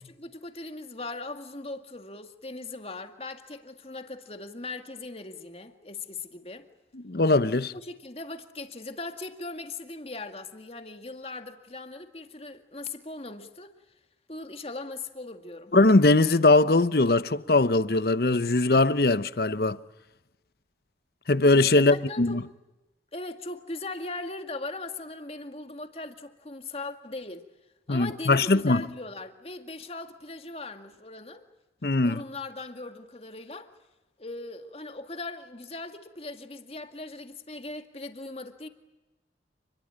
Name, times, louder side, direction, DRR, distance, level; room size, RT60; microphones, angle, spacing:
voice 1, 0.1-6.7 7.7-13.7 14.3-15.7 21.7-22.4 23.1-27.4 27.9-31.4 32.0-33.7 34.2-38.7, left 2 dB, 35° left, 2.1 m, -39 dB
voice 2, 6.9-7.7 15.7-19.8 21.3-22.4 27.9-28.8 31.8-32.2, left 2 dB, 60° left, 0.9 m, -21 dB
29.5 x 21.5 x 8.8 m
head